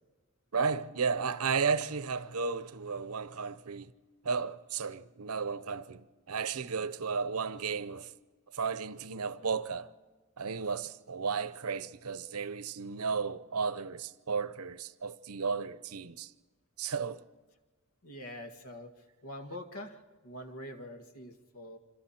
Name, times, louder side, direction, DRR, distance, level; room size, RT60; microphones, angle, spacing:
voice 1, 0.5-3.9 4.2-8.1 8.5-9.9 10.4-16.3 16.8-17.2, right 5 dB, 85° right, 0.8 m, -34 dB
voice 2, 18.0-18.9 19.2-21.8, left 1 dB, 80° left, 2.0 m, -45 dB
27.0 x 26.0 x 4.4 m
head